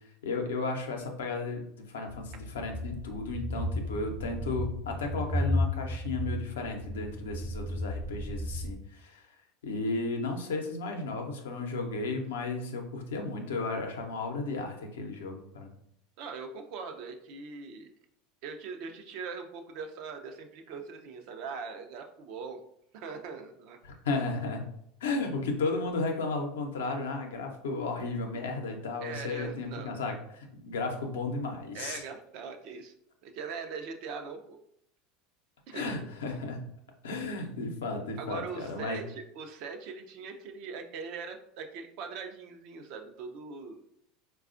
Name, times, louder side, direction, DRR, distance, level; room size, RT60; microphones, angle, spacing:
voice 1, 0.2-9.2 9.6-15.7 23.8-24.6 25.0-32.0 35.7-36.6 37.0-39.0, left 3 dB, 85° left, 3 dB, 0.6 m, -34 dB
sound 1, 2.1-8.8, left 1 dB, 5° left, 0.3 m, -34 dB
voice 2, 16.2-17.9 18.4-22.6 22.9-23.8 29.0-30.0 31.7-32.9 33.2-34.6 35.7-35.9 38.2-43.8, right 5 dB, 60° right, 5 dB, 0.5 m, -41 dB
4.1 x 2.3 x 2.5 m, 0.72 s
hypercardioid pair, 95°, 0 cm